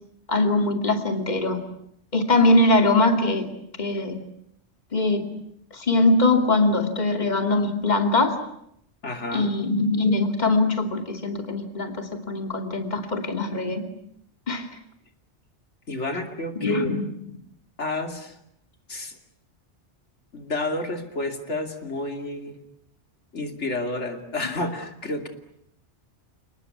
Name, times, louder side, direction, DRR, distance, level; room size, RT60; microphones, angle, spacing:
voice 1, 0.3-1.6 2.1-3.5 3.8-4.2 4.9-5.3 5.7-8.4 9.3-13.8 14.5-14.7 16.6-17.0, left 2 dB, 40° left, 5 dB, 2.8 m, -22 dB
voice 2, 9.0-9.5 15.9-16.9 17.8-18.4 18.9-19.2 20.3-22.6 23.3-25.3, left 2 dB, 80° left, 5 dB, 3.1 m, -30 dB
29.5 x 19.5 x 9.8 m, 0.76 s
omnidirectional pair, 1.2 m